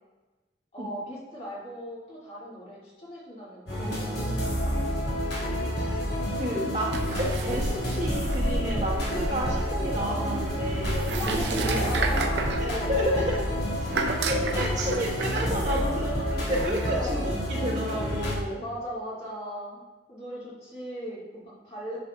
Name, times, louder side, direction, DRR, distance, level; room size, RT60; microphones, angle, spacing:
voice 1, 0.7-4.8 10.0-10.3 11.2-13.1 14.2-16.0 16.9-17.3 18.6-19.8 20.1-22.0, equal, 35° left, -7 dB, 2.2 m, -38 dB
sound 1, 3.7-18.4, equal, 65° left, 2.2 m, -29 dB
voice 2, 6.3-11.1 11.6-12.1 12.9-13.2 13.9-18.6, equal, 45° right, -5 dB, 1.4 m, -31 dB
sound 2, 6.9-16.9, right 3 dB, 70° right, 0.6 m, -33 dB
10.5 x 6.0 x 2.3 m, 1.2 s
head